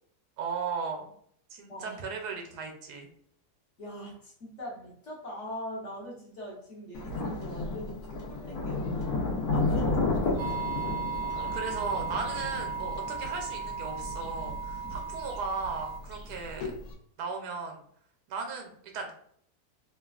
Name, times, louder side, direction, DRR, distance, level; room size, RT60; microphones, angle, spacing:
voice 1, 0.4-1.1 1.5-3.1 11.5-16.7 17.2-17.8 18.3-19.1, right 5 dB, 90° right, 3 dB, 1.2 m, -36 dB
voice 2, 1.7-2.0 3.8-8.0 8.3-9.2 9.5-10.6, equal, 55° left, -3 dB, 1.1 m, -41 dB
Thunder, 6.9-16.9, left 3 dB, 75° left, 1.2 m, -33 dB
sound 1, 10.4-16.0, right 5 dB, 70° right, 0.6 m, -36 dB
3.2 x 2.3 x 2.3 m, 0.64 s
omnidirectional pair, 1.7 m